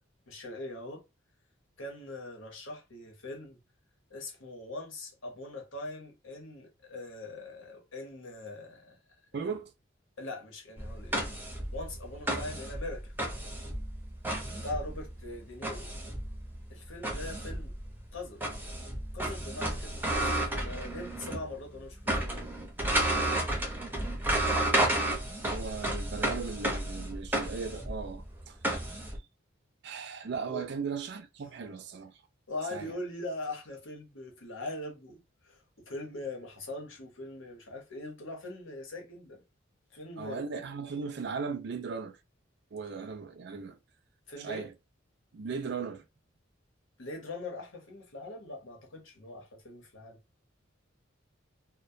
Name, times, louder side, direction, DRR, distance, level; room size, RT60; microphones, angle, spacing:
voice 1, 0.3-1.0 1.8-3.6 4.1-9.0 10.2-11.2 11.7-13.1 14.6-15.9 16.7-17.7 18.1-18.4 19.1-22.5 30.5-30.7 32.5-39.4 39.9-40.4 44.3-44.6 47.0-50.2, left 2 dB, 75° left, 0.9 m, -41 dB
voice 2, 9.3-9.7 25.4-28.6 29.8-32.2 32.7-32.9 40.2-42.2 42.7-43.8 44.4-44.7 45.3-46.0, right 5 dB, 55° right, 0.4 m, -37 dB
sound 1, 10.8-21.5 21.8-29.2, right 1 dB, 10° right, 0.6 m, -32 dB
2.2 x 2.1 x 2.6 m
head